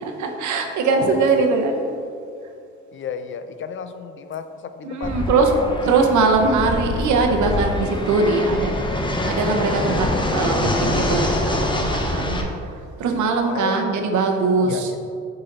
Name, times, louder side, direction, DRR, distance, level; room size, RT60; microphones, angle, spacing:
voice 1, 0.0-1.9 4.8-5.5 5.8-9.0 9.3-12.5 13.0-14.9, right 4 dB, 75° right, 4 dB, 0.8 m, -21 dB
voice 2, 0.9-1.5 2.9-5.8 6.2-6.3 8.7-9.3 13.5-14.1 14.6-15.0, left 6 dB, 40° left, 9 dB, 0.5 m, -33 dB
Fixed-wing aircraft airplane, 5.0-12.4, left 1 dB, 15° left, 0.7 m, -24 dB
6.7 x 4.0 x 4.0 m, 2.4 s
cardioid pair, 90°, 30 cm